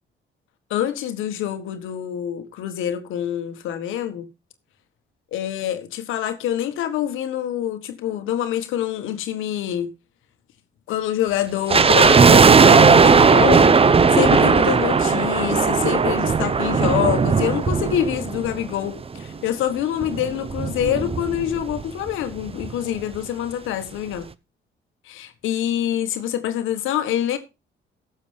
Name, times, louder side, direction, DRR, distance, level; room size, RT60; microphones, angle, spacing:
voice 1, 0.7-4.3 5.3-9.9 10.9-24.3 25.0-27.4, left 11 dB, 90° left, 1.5 m, -26 dB
sound 1, 11.7-19.0 19.2-19.3 20.0-21.8 22.1-22.2 22.4-22.7 23.1-23.2, right 5 dB, 30° right, 0.8 m, -16 dB
16.0 x 7.2 x 3.5 m
cardioid pair, 90°, 20 cm